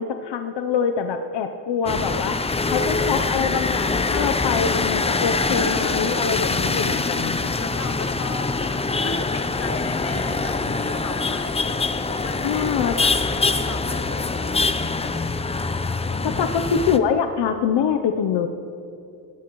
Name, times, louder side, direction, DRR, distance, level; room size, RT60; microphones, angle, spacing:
voice 1, 0.0-2.4 2.7-7.5 12.4-12.9 16.4-18.5, left 7 dB, 75° left, 7 dB, 0.8 m, -24 dB
sound 1, 1.9-17.0, left 3 dB, 15° left, 0.5 m, -24 dB
voice 2, 7.6-13.1 13.4-15.3 16.1-16.5, left 3 dB, 35° left, 4 dB, 1.6 m, -37 dB
20.5 x 17.5 x 3.1 m, 2.7 s
cardioid pair, 125°, 43 cm